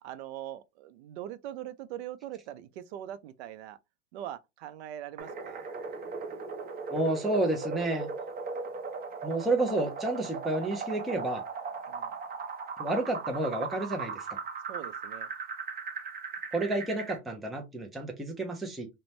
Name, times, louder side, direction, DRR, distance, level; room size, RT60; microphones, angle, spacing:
voice 1, 0.0-3.8 4.1-5.6 11.9-12.1 14.7-15.3, right 12 dB, 65° right, 0.5 m, -42 dB
sound 1, 5.2-17.2, right 5 dB, 25° right, 0.7 m, -38 dB
voice 2, 6.9-8.1 9.2-11.5 12.8-14.4 16.5-18.9, right 2 dB, ahead, 0.4 m, -30 dB
2.5 x 2.2 x 3.1 m
supercardioid pair, 120°, 35 cm